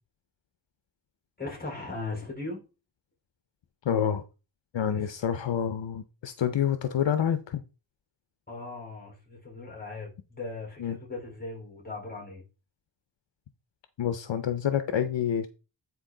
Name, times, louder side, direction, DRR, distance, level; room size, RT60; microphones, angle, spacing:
voice 1, 1.4-2.6 4.9-5.1 8.5-12.4, left 3 dB, 20° left, 4.2 m, -38 dB
voice 2, 3.8-4.2 4.7-7.6 10.8-11.0 14.0-15.5, left 9 dB, 70° left, 0.7 m, -27 dB
9.5 x 4.5 x 3.8 m
wide cardioid pair, 100°, 47 cm